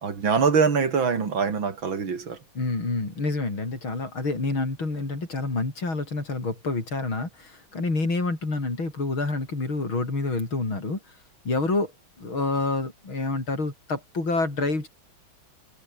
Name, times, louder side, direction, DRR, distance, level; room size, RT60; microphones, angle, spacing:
voice 1, 0.0-2.4, right 5 dB, 75° right, 3.3 m, -23 dB
voice 2, 2.6-11.0 11.5-11.9 12.2-14.9, left 3 dB, 85° left, 7.2 m, -28 dB
omnidirectional pair, 2.2 m